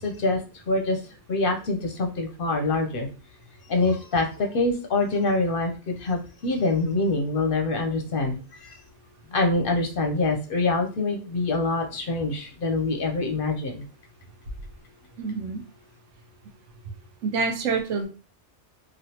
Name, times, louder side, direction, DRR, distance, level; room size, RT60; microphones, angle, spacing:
voice 1, 0.0-0.4 0.7-1.0 1.3-3.1 3.7-8.8 9.3-13.8, left 3 dB, 60° left, 3 dB, 0.7 m, -25 dB
voice 2, 15.2-15.6 17.2-18.1, right 4 dB, 80° right, 4 dB, 1.0 m, -26 dB
3.1 x 2.4 x 2.8 m, 0.34 s
omnidirectional pair, 1.2 m